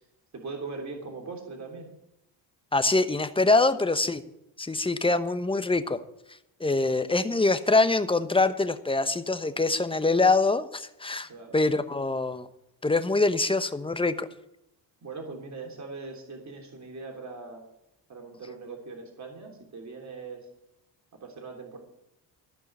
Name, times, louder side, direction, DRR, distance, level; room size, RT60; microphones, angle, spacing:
voice 1, 0.3-1.9 11.3-11.6 15.0-17.6 18.1-20.5 21.2-21.8, right 4 dB, 40° right, 2 dB, 3.3 m, -40 dB
voice 2, 2.7-4.2 4.6-6.0 6.6-12.5 12.8-14.3, left 3 dB, 10° left, 11 dB, 1.0 m, -24 dB
15.0 x 5.5 x 9.4 m, 0.85 s
cardioid pair, 85°, 43 cm